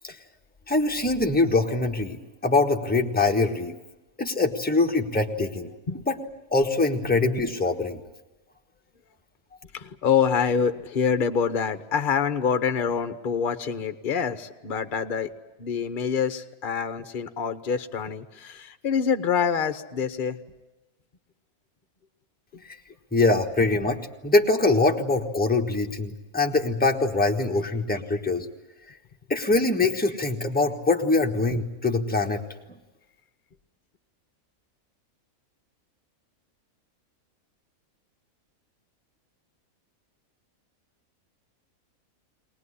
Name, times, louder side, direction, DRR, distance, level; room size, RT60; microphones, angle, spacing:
voice 1, 0.7-3.7 4.2-5.7 6.1-6.2 6.5-8.0 23.1-28.4 29.3-32.4, left 3 dB, 5° left, 2 dB, 1.3 m, -23 dB
voice 2, 9.7-15.3 15.6-20.4 22.5-22.6, left 6 dB, 40° left, 10 dB, 1.0 m, -26 dB
22.5 x 19.0 x 9.9 m, 1.0 s
omnidirectional pair, 1.5 m